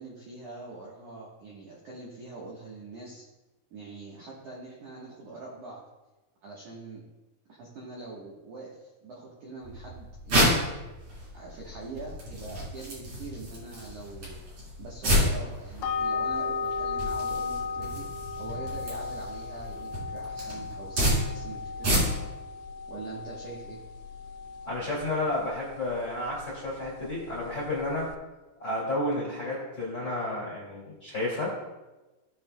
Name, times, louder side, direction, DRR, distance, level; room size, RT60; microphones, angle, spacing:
voice 1, 0.0-3.3 3.7-5.8 6.4-7.1 7.5-10.7 11.3-14.4 14.8-18.1 18.4-22.2 22.9-23.8, right 3 dB, 70° right, -5 dB, 1.9 m, -43 dB
sound 1, 9.6-22.4, equal, 40° right, 4.3 m, -30 dB
sound 2, 15.8-28.2, left 4 dB, 85° left, 2.3 m, -36 dB
voice 2, 24.6-28.1 28.6-31.6, left 1 dB, 35° left, -5 dB, 1.8 m, -31 dB
17.5 x 6.5 x 2.2 m, 1.1 s
omnidirectional pair, 5.3 m